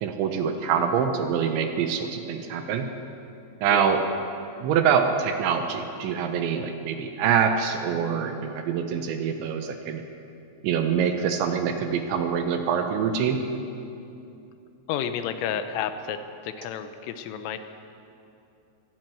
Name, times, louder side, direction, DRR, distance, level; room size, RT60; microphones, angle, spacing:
voice 1, 0.0-2.9 3.6-4.0 4.6-10.0 10.6-13.4, right 7 dB, 75° right, 6 dB, 3.0 m, -25 dB
voice 2, 14.9-17.6, left 8 dB, 90° left, 9 dB, 3.5 m, -31 dB
23.0 x 12.5 x 9.2 m, 2.8 s
omnidirectional pair, 5.9 m